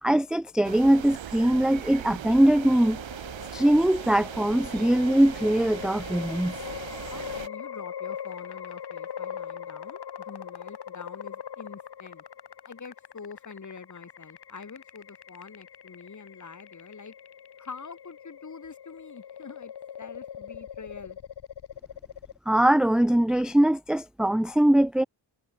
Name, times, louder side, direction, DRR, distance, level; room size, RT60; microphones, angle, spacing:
voice 1, 0.0-3.0 3.5-6.6 22.5-25.0, right 1 dB, ahead, 0.5 m, -22 dB
sound 1, 0.6-7.5, right 10 dB, 75° right, 1.1 m, -39 dB
sound 2, 2.6-22.4, left 9 dB, 60° left, 1.2 m, -41 dB
voice 2, 7.1-12.2 12.6-17.1 17.6-19.7 20.0-21.2, left 5 dB, 40° left, 3.2 m, -45 dB
wide cardioid pair, 155°, 46 cm